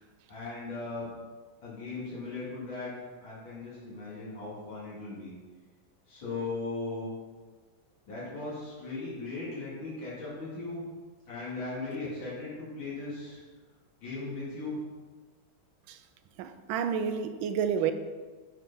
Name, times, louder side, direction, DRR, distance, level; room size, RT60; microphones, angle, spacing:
voice 1, 0.3-1.1 1.6-5.3 6.1-7.1 8.1-10.8 11.3-13.4 14.0-14.8, left 3 dB, 85° left, 3.1 m, -38 dB
voice 2, 16.4-17.9, right 7 dB, 85° right, 1.4 m, -30 dB
7.8 x 4.8 x 5.5 m
omnidirectional pair, 2.1 m